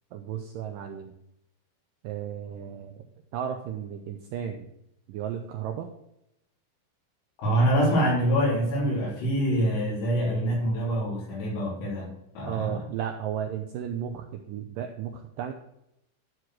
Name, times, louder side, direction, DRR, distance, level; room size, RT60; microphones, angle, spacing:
voice 1, 0.1-1.1 2.0-3.0 3.3-4.7 5.1-5.9 12.5-15.5, right 9 dB, 80° right, 5 dB, 1.9 m, -34 dB
voice 2, 7.4-12.1 12.4-12.8, equal, 85° left, -4 dB, 5.5 m, -25 dB
11.5 x 4.7 x 6.3 m, 0.80 s
omnidirectional pair, 4.8 m